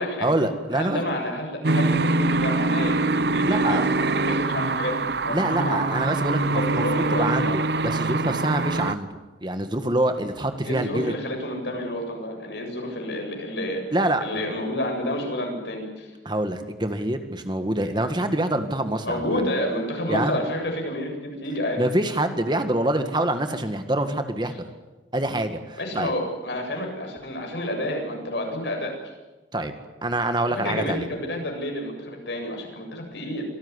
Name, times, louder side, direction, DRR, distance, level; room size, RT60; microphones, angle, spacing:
voice 1, 0.2-1.0 3.4-3.8 5.3-11.2 13.9-14.2 16.3-19.3 20.1-20.4 21.8-24.5 25.1-26.1 29.5-29.7 30.0-31.1, right 1 dB, 25° right, 7 dB, 1.8 m, -25 dB
voice 2, 0.7-5.9 6.3-7.6 10.7-13.8 14.2-16.1 19.0-21.8 25.8-28.9 30.4-33.4, left 1 dB, 70° left, 2 dB, 7.7 m, -29 dB
sound 1, 1.6-9.0, right 3 dB, 65° right, 0.8 m, -24 dB
26.5 x 18.5 x 9.9 m, 1.2 s
head